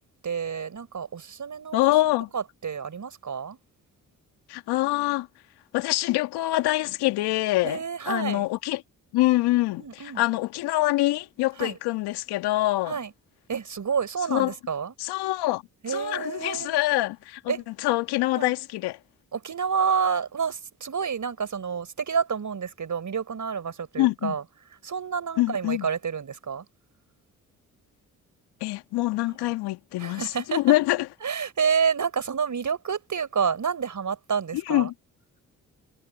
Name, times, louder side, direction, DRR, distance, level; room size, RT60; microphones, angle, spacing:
voice 1, 0.2-1.8 2.3-3.6 7.6-8.5 9.8-10.2 11.6-11.7 12.9-13.1 13.5-14.9 15.8-16.7 17.5-17.6 18.3-18.5 19.3-24.4 24.8-26.6 30.0-30.6 31.2-34.9, right 6 dB, 50° right, 5.3 m, -29 dB
voice 2, 1.7-2.3 4.5-5.3 5.7-8.8 9.1-13.0 14.3-14.5 15.0-19.0 24.0-24.4 25.4-25.9 28.6-31.1 34.5-34.9, left 18 dB, 80° left, 2.2 m, -25 dB
hypercardioid pair, 45°, 39 cm